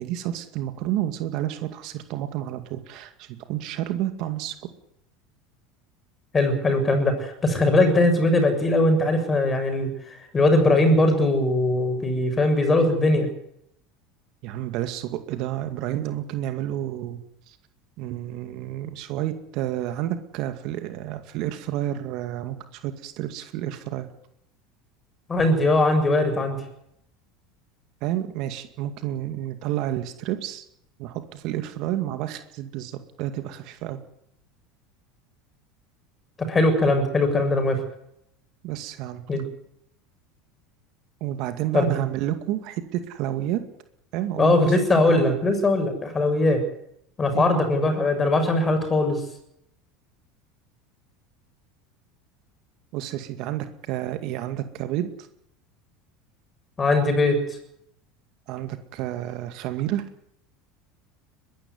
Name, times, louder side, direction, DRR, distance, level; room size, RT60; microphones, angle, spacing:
voice 1, 0.0-4.6 14.4-17.6 18.0-24.1 28.0-30.6 31.0-34.0 38.6-39.2 41.2-43.6 44.1-44.8 45.1-45.4 47.3-47.5 52.9-55.1 58.5-60.0, right 13 dB, 60° right, 8 dB, 2.2 m, -30 dB
voice 2, 6.3-13.3 25.3-26.6 36.4-37.8 39.3-39.4 41.7-42.0 44.4-46.6 47.2-49.2 56.8-57.4, left 2 dB, 20° left, 6 dB, 7.0 m, -20 dB
22.0 x 12.5 x 9.6 m, 0.75 s
supercardioid pair, 105°, 0 cm